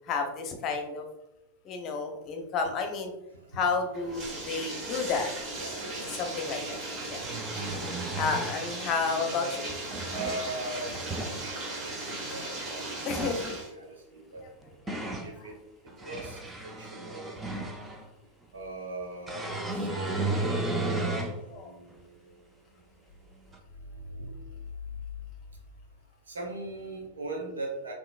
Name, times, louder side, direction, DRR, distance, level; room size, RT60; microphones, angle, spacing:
voice 1, 0.1-1.1 1.6-3.1 3.5-5.3 6.1-6.8 7.1-7.2 8.2-9.7 13.0-13.5 14.9-15.0 19.4-19.5 21.5-21.7, left 5 dB, 35° left, 3 dB, 0.8 m, -31 dB
Bathtub (filling or washing), 3.9-13.7, right 2 dB, 30° right, 1.1 m, -37 dB
voice 2, 5.5-6.2 6.5-7.9 10.1-12.8 13.5-14.5 15.2-15.6 16.0-17.4 18.5-22.4 23.7-24.6 24.9-25.0 26.3-27.9, right 2 dB, 70° right, 0 dB, 1.1 m, -41 dB
sound 1, 6.1-6.2 7.0-8.7 9.7-10.4 10.9-11.4 13.0-13.4 14.4-15.3 15.9-18.1 19.3-21.4 21.9-22.0 23.5-23.6, right 2 dB, 15° right, 0.6 m, -34 dB
5.8 x 3.1 x 2.5 m, 0.90 s
figure-of-eight pair, 90°, 0 cm